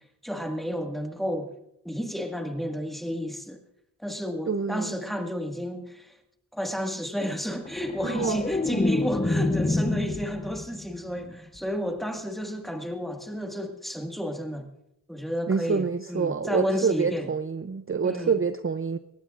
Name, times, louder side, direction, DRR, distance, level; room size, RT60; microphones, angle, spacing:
voice 1, 0.2-1.5 1.8-3.6 4.0-6.1 6.5-14.7 15.1-17.3 18.0-18.3, equal, ahead, 1.7 m, -31 dB
voice 2, 4.5-4.9 8.0-8.4 15.5-19.0, right 5 dB, 35° right, 0.5 m, -27 dB
sound 1, 7.7-10.8 11.2-11.6, left 2 dB, 15° left, 0.7 m, -27 dB
22.0 x 18.0 x 2.5 m
wide cardioid pair, 90°, 39 cm